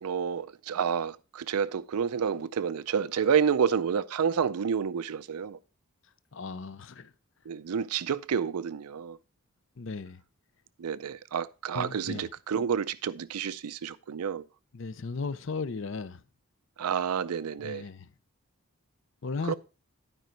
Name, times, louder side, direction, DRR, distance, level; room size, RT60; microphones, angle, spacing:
voice 1, 0.0-5.6 7.5-9.2 10.8-14.4 16.8-17.9 19.4-19.5, right 7 dB, 90° right, 0.5 m, -29 dB
voice 2, 6.3-7.1 9.8-10.2 11.7-12.2 14.7-16.2 17.6-18.1 19.2-19.5, left 4 dB, 60° left, 0.6 m, -36 dB
12.0 x 5.1 x 4.5 m
head